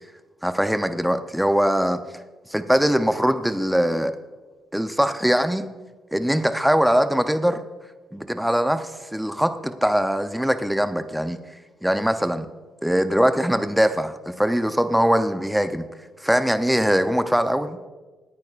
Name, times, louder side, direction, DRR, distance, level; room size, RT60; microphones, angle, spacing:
voice 1, 0.4-2.0 2.5-4.2 4.7-5.7 6.1-7.6 8.1-11.4 11.8-12.5 12.8-15.8 16.2-17.8, equal, 5° right, 9 dB, 0.6 m, -21 dB
24.5 x 9.0 x 2.4 m, 1.3 s
cardioid pair, 90°, 0 cm